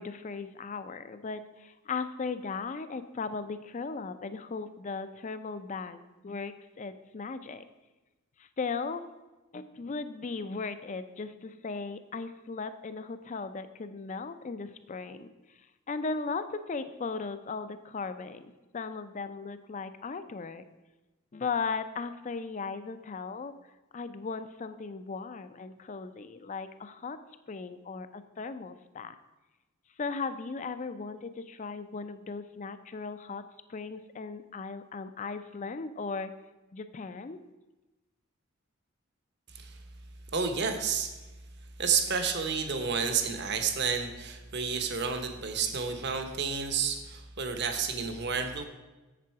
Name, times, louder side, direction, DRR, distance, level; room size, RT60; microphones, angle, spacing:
voice 1, 0.0-7.6 8.4-9.1 9.5-20.6 21.3-23.5 23.9-27.2 27.5-29.2 30.0-33.4 33.7-36.3 36.7-37.4, left 4 dB, 35° left, 11 dB, 0.4 m, -37 dB
voice 2, 40.3-41.2 41.8-48.6, right 6 dB, 50° right, 7 dB, 0.9 m, -30 dB
7.5 x 7.1 x 4.6 m, 1.1 s
head